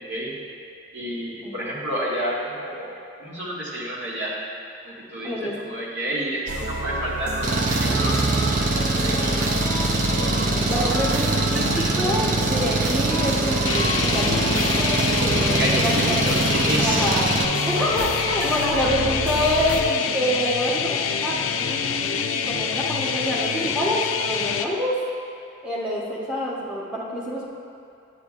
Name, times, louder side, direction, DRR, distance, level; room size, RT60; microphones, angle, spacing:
voice 1, 0.9-2.9 3.2-4.3 4.9-5.3 5.7-8.2 9.0-9.4 15.6-17.0, right 1 dB, 65° right, -7 dB, 1.8 m, -29 dB
sound 1, 6.5-19.8, right 1 dB, 80° right, 0.7 m, -28 dB
Engine, 7.4-17.4, right 2 dB, 40° right, 0.5 m, -23 dB
voice 2, 10.2-16.4 16.8-17.3 17.5-24.9 25.6-27.4, equal, 5° right, -7 dB, 1.1 m, -27 dB
sound 2, 13.6-24.6, left 7 dB, 90° left, 0.4 m, -26 dB
9.8 x 8.1 x 2.5 m, 2.6 s
head